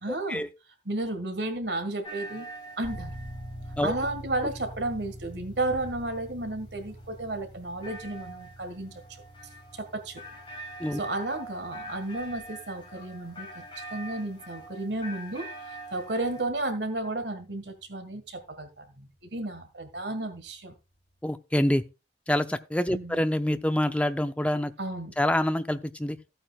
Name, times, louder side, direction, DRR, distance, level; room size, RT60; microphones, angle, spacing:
voice 1, 0.0-0.4 0.8-2.5 2.8-3.1 3.8-9.0 9.7-10.2 10.9-13.6 13.9-20.7 22.9-23.2 24.8-25.1, right 2 dB, 70° right, 1.7 m, -33 dB
sound 1, 2.0-16.5, right 1 dB, 30° left, 4.2 m, -45 dB
sound 2, 2.8-17.2, equal, 75° left, 4.1 m, -46 dB
voice 2, 21.2-21.8 22.3-24.7 25.2-26.2, left 1 dB, 5° left, 0.5 m, -26 dB
15.0 x 9.0 x 2.4 m
head